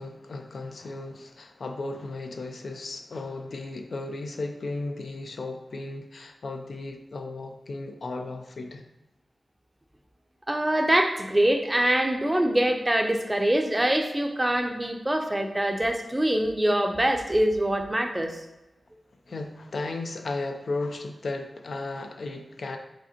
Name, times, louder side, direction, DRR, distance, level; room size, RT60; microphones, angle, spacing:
voice 1, 0.0-8.8 19.3-22.8, left 2 dB, 75° left, 4 dB, 0.4 m, -35 dB
voice 2, 10.5-18.4, right 1 dB, 20° right, 5 dB, 0.5 m, -24 dB
5.0 x 3.5 x 2.8 m, 0.96 s
cardioid pair, 50°, 0 cm